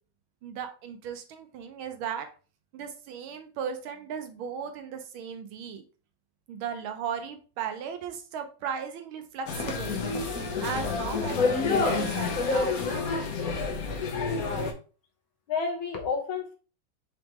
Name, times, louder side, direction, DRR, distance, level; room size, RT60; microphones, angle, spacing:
voice 1, 0.4-2.3 2.7-5.8 6.5-10.0 10.4-12.8, right 7 dB, 80° right, 7 dB, 1.6 m, -36 dB
sound 1, 9.5-14.7, left 4 dB, 55° left, 1.1 m, -28 dB
voice 2, 14.1-14.7 15.5-16.5, left 5 dB, 75° left, 3 dB, 1.8 m, -31 dB
5.0 x 3.5 x 3.0 m, 0.36 s
omnidirectional pair, 2.2 m